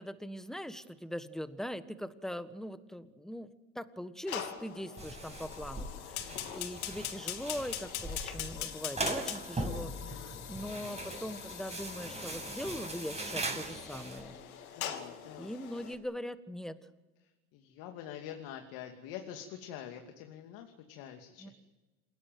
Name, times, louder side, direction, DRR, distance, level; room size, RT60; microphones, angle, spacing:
voice 1, 0.0-14.4 15.4-16.8 21.4-21.5, equal, ahead, 12 dB, 1.6 m, -41 dB
Fire, 4.3-15.9, left 9 dB, 85° left, 3.0 m, -42 dB
sound 1, 5.0-14.2, right 2 dB, 15° right, 6.5 m, -40 dB
voice 2, 6.2-6.6 9.9-10.4 14.7-15.5 17.5-21.5, left 10 dB, 60° left, 4 dB, 2.8 m, -46 dB
28.0 x 18.0 x 9.4 m, 1.1 s
hypercardioid pair, 95°, 41 cm